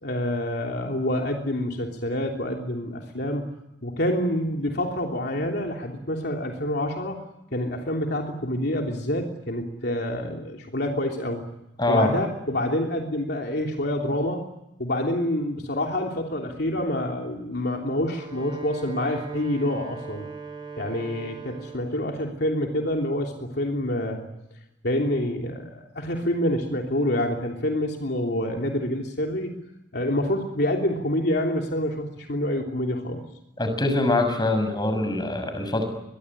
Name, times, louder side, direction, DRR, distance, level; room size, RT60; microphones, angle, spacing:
voice 1, 0.0-3.5 3.8-7.2 7.5-11.5 11.9-14.4 14.8-20.3 20.8-24.3 24.8-29.5 29.9-33.2, left 1 dB, 65° left, 1 dB, 3.2 m, -27 dB
voice 2, 11.8-12.1 33.6-35.8, left 2 dB, 25° left, 7 dB, 6.9 m, -23 dB
Wind instrument woodwind instrument, 17.9-22.1, right 5 dB, 25° right, 6.0 m, -40 dB
24.0 x 22.5 x 9.8 m, 0.88 s
head